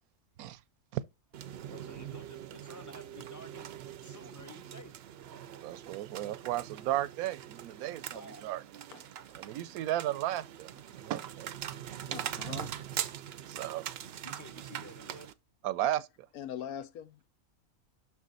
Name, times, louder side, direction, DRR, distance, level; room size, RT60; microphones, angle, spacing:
sound 1, 1.3-15.3, right 10 dB, 60° right, 0.7 m, -42 dB
voice 1, 1.7-3.7 4.0-4.9 5.3-5.4 8.1-8.5 12.0-12.2 14.2-15.3, left 1 dB, 15° left, 0.8 m, -51 dB
voice 2, 5.6-8.6 9.3-11.5 12.5-12.6 13.5-13.9 15.6-16.1, right 13 dB, 85° right, 1.1 m, -34 dB
voice 3, 12.1-12.8 16.3-17.3, left 10 dB, 85° left, 1.2 m, -42 dB
7.2 x 6.0 x 4.0 m
omnidirectional pair, 1.5 m